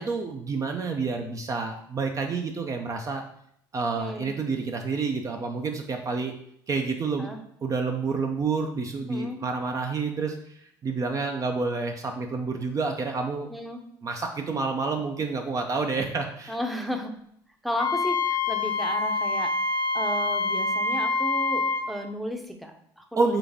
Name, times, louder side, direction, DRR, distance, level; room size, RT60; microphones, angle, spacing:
voice 1, 0.0-3.2 3.7-6.3 6.7-7.3 7.6-13.5 14.0-16.6 23.2-23.4, right 4 dB, 35° right, 4 dB, 0.5 m, -29 dB
voice 2, 4.0-4.3 7.2-7.4 9.1-9.4 13.5-13.8 16.5-17.1 17.6-19.5 19.9-23.4, equal, ahead, 4 dB, 0.7 m, -33 dB
Wind instrument woodwind instrument, 17.8-21.9, left 3 dB, 45° left, 0.8 m, -26 dB
3.9 x 3.4 x 3.4 m, 0.70 s
supercardioid pair, 80°, 10 cm